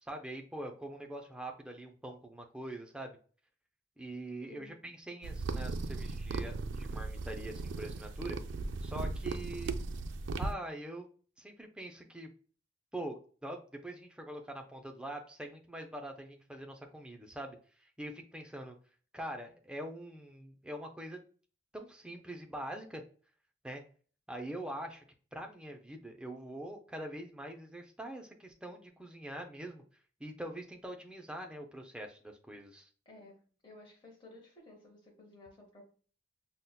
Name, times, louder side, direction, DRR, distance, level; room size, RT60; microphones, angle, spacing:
voice 1, 0.0-3.2 4.0-8.4 8.8-9.8 10.4-11.1 11.4-12.3 12.9-18.8 19.1-21.2 21.7-23.0 23.6-23.8 24.3-25.0 25.3-29.8 30.2-32.9, right 1 dB, 5° right, 2 dB, 0.4 m, -44 dB
sound 1, 5.2-10.5, right 3 dB, 75° right, 0.3 m, -37 dB
voice 2, 33.1-35.9, left 2 dB, 25° left, -1 dB, 0.7 m, -55 dB
5.3 x 2.1 x 2.2 m, 0.42 s
head